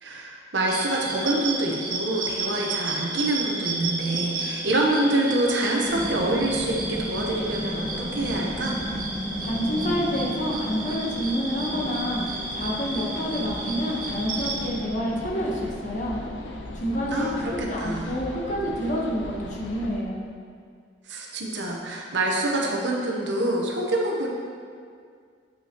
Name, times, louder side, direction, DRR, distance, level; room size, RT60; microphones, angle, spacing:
voice 1, 0.0-8.8 17.1-18.1 21.1-24.3, right 1 dB, 75° right, -1 dB, 0.9 m, -26 dB
sound 1, 0.7-14.7, right 3 dB, 50° right, 0.8 m, -33 dB
sound 2, 5.5-19.7, equal, 15° left, 0.8 m, -37 dB
sound 3, 5.8-20.0, left 1 dB, 80° left, 0.7 m, -39 dB
voice 2, 9.4-12.2 12.5-16.2 16.7-20.2, equal, 45° left, -3 dB, 1.0 m, -28 dB
8.1 x 5.7 x 2.9 m, 2.1 s
head